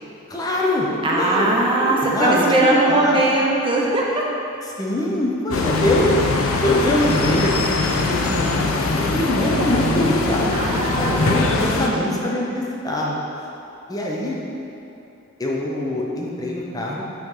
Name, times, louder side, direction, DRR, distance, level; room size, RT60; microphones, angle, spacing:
voice 1, 0.3-3.2 4.8-6.2 6.6-13.1 13.9-14.4 15.4-17.0, left 1 dB, 20° left, -3 dB, 0.6 m, -23 dB
voice 2, 1.0-4.2 10.5-12.5, right 2 dB, 25° right, -3 dB, 0.7 m, -21 dB
sound 1, 5.5-11.9, left 3 dB, 80° left, 0.5 m, -22 dB
5.5 x 3.1 x 5.6 m, 2.9 s
head